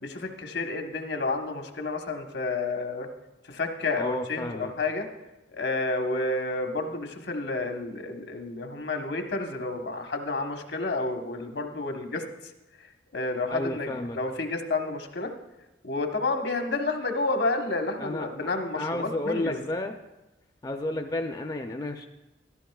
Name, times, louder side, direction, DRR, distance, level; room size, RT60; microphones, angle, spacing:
voice 1, 0.0-3.1 3.5-5.1 5.5-12.2 13.1-15.3 15.8-19.6, left 3 dB, 75° left, 4 dB, 1.1 m, -30 dB
voice 2, 3.9-4.7 13.5-14.2 18.0-20.0 20.6-22.1, left 1 dB, 20° left, 5 dB, 0.4 m, -32 dB
14.0 x 12.5 x 2.3 m, 1.0 s
head